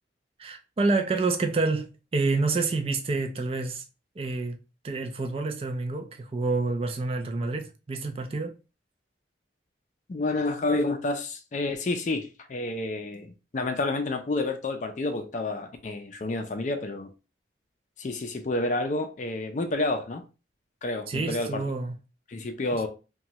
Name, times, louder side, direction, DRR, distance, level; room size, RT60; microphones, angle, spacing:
voice 1, 0.4-3.8 4.2-4.6 4.8-8.5 21.1-22.0, right 3 dB, 30° right, 0.3 m, -28 dB
voice 2, 10.1-17.1 18.0-20.2 20.8-21.6 22.3-22.9, left 2 dB, 40° left, 0.4 m, -29 dB
2.9 x 2.2 x 2.8 m
head